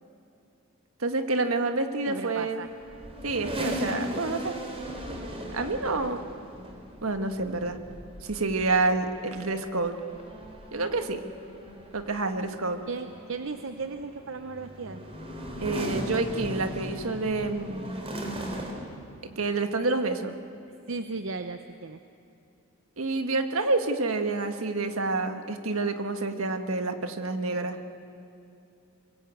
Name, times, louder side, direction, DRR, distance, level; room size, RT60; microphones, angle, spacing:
voice 1, 1.0-2.7 3.2-4.6 5.5-6.2 7.0-7.8 8.2-9.9 10.7-11.2 11.9-12.8 15.6-18.0 19.4-20.3 23.0-27.8, right 3 dB, 80° right, 7 dB, 1.6 m, -28 dB
voice 2, 2.1-2.7 12.9-15.0 20.9-22.0, right 4 dB, 65° right, 8 dB, 0.8 m, -36 dB
sound 1, 2.6-18.7, equal, 30° right, 3.7 m, -38 dB
23.0 x 22.5 x 8.4 m, 2.7 s
head